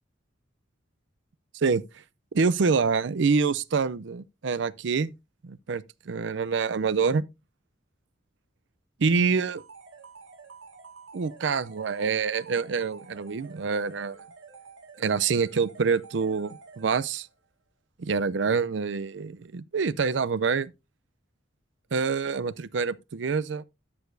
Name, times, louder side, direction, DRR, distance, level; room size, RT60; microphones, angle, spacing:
voice 1, 2.3-5.1 5.4-7.2 9.0-9.6 11.1-14.2 15.0-17.3 18.0-20.7 21.9-23.6, right 5 dB, 70° right, 0.5 m, -26 dB
sound 1, 9.6-17.3, right 4 dB, 85° right, 1.8 m, -49 dB
12.5 x 6.7 x 2.6 m
head